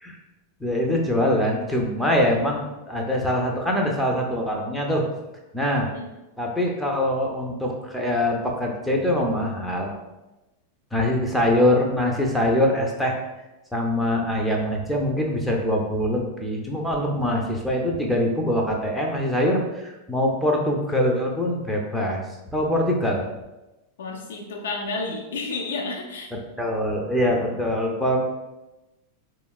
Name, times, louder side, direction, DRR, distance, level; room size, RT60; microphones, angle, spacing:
voice 1, 0.6-5.0 5.5-5.9 6.4-10.0 10.9-13.2 13.7-22.2 22.5-23.2 26.6-28.2, left 1 dB, ahead, -1 dB, 0.5 m, -23 dB
voice 2, 24.0-26.3, left 3 dB, 60° left, 1 dB, 0.6 m, -31 dB
3.4 x 3.0 x 2.4 m, 1.0 s
figure-of-eight pair, 90°, 0 cm